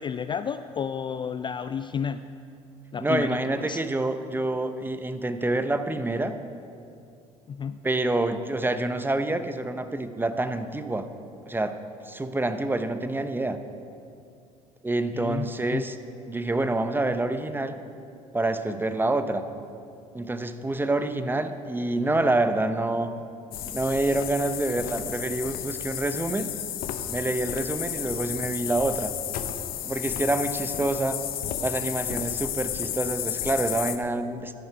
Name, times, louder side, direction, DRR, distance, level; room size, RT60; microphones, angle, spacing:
voice 1, 0.0-2.3 2.9-3.8 7.5-7.8 15.1-15.8, left 7 dB, 25° left, 11 dB, 0.4 m, -32 dB
voice 2, 3.0-6.4 7.8-11.1 11.5-11.8 12.0-13.6 14.8-16.0 16.3-17.8 18.3-19.4 20.1-23.1 23.7-26.5 27.1-29.1 29.8-31.2 31.6-34.5, right 2 dB, 10° right, 10 dB, 0.8 m, -27 dB
sound 1, 23.5-34.0, left 11 dB, 55° left, 0.9 m, -32 dB
13.0 x 11.0 x 4.8 m, 2.5 s
hypercardioid pair, 60°, 18 cm